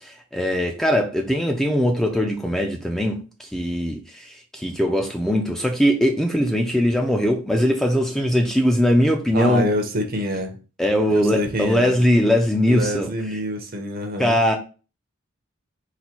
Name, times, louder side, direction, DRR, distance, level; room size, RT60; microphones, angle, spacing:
voice 1, 0.0-9.7 10.8-13.4 14.2-14.6, equal, ahead, 0.4 m, -21 dB
voice 2, 9.3-10.5 11.1-12.0 12.7-14.4, equal, 45° right, 0.7 m, -26 dB
4.0 x 2.1 x 4.4 m
head